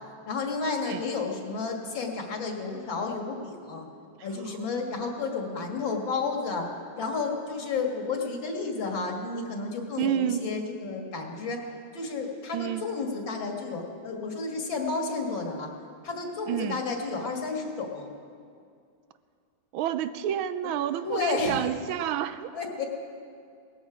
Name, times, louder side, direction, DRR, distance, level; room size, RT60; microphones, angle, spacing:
voice 1, 0.3-3.9 4.2-6.7 7.0-11.6 11.9-15.7 16.0-18.1 21.0-21.6 22.5-22.9, left 4 dB, 70° left, 2 dB, 2.3 m, -31 dB
voice 2, 10.0-10.4 12.5-12.9 16.5-16.8 19.7-22.5, right 10 dB, 90° right, 12 dB, 1.4 m, -29 dB
18.5 x 13.5 x 5.0 m, 2.3 s
omnidirectional pair, 2.2 m